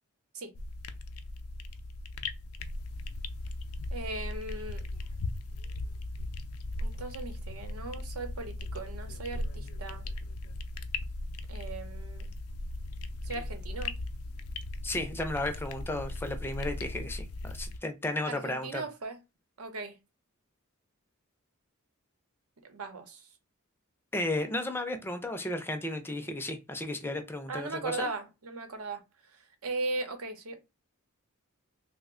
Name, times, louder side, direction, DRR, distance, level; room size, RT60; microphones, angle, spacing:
sound 1, 0.5-17.8, left 2 dB, 90° left, 0.4 m, -38 dB
voice 1, 3.9-4.8 6.8-10.0 11.5-12.3 13.2-13.9 18.3-19.2 19.6-20.0 22.7-23.2 27.5-29.0 29.6-30.5, right 3 dB, 90° right, 0.9 m, -38 dB
voice 2, 14.8-18.8 24.1-28.1, left 1 dB, 10° left, 0.4 m, -34 dB
3.0 x 2.1 x 3.6 m
head